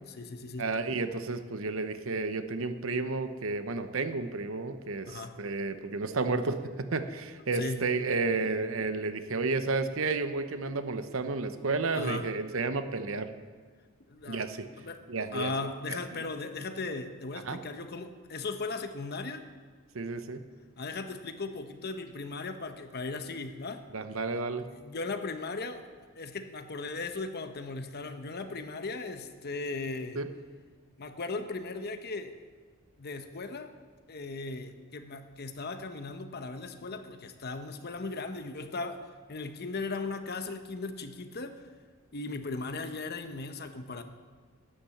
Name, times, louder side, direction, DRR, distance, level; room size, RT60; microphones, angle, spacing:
voice 1, 0.1-0.7 5.1-5.4 7.5-7.8 11.9-12.3 14.1-14.5 14.8-15.0 15.3-19.4 20.8-23.8 24.7-25.8 26.1-30.2 31.0-32.3 33.0-33.8 34.1-41.6 42.1-44.0, left 3 dB, 50° left, 8 dB, 0.9 m, -37 dB
voice 2, 0.6-13.3 14.3-14.7 15.1-15.5 15.9-16.2 17.4-17.6 19.9-20.4 23.9-24.7 30.2-30.3, right 3 dB, 70° right, 9 dB, 0.9 m, -32 dB
11.5 x 10.5 x 7.1 m, 1.5 s
head